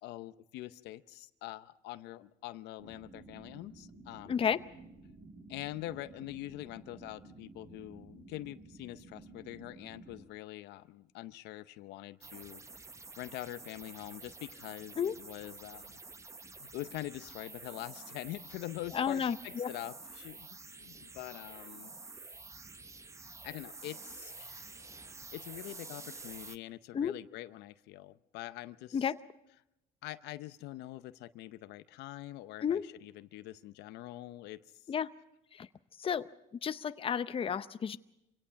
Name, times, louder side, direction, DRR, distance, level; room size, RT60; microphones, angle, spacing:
voice 1, 0.0-4.4 5.5-12.6 13.2-16.0 16.6-21.9 23.2-24.8 25.3-29.1 30.0-34.6, left 15 dB, 85° left, 13 dB, 0.7 m, -44 dB
sound 1, 2.8-10.2, right 3 dB, 40° right, 4.8 m, -53 dB
voice 2, 4.3-4.6 15.0-15.2 18.9-19.7 26.9-27.2 28.9-29.2 32.6-32.8 34.9-35.1 35.5-35.7 36.0-36.3 36.6-38.0, left 7 dB, 35° left, 12 dB, 0.7 m, -32 dB
Jimmy's White Noise Sweeps, 12.2-26.6, right 3 dB, 15° right, 0.7 m, -49 dB
25.5 x 17.5 x 5.8 m, 0.85 s
cardioid pair, 110°, 17 cm